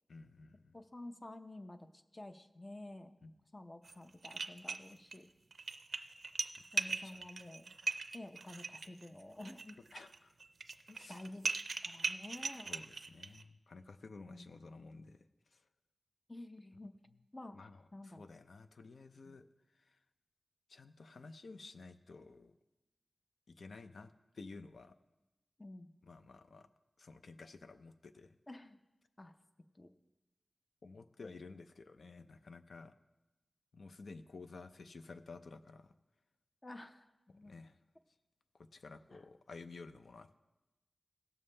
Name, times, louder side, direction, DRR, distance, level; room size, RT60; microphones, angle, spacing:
voice 1, 0.1-0.7 3.2-3.3 6.9-7.2 9.9-10.3 10.9-11.2 12.7-15.2 15.5-15.6 17.5-19.5 19.8-20.0 20.7-22.5 23.5-24.9 26.0-26.7 27.0-28.3 30.8-32.9 33.7-35.9 37.4-37.7 38.7-40.4, left 3 dB, 80° left, 10 dB, 0.5 m, -53 dB
voice 2, 0.7-3.1 3.5-5.3 6.7-7.8 8.1-9.8 11.1-11.5 11.8-12.7 14.3-14.8 16.3-17.0 17.3-17.6 17.9-18.2 19.2-19.4 25.6-25.9 28.5-28.8 29.2-29.4 29.7-29.9 31.2-31.3 36.6-37.5 39.1-39.2, left 1 dB, 30° left, 8 dB, 0.6 m, -51 dB
sound 1, 3.9-4.0 4.2-5.2 5.5-13.4, right 4 dB, 75° right, 0.4 m, -40 dB
16.5 x 7.1 x 3.3 m, 1.1 s
wide cardioid pair, 75°, 0 cm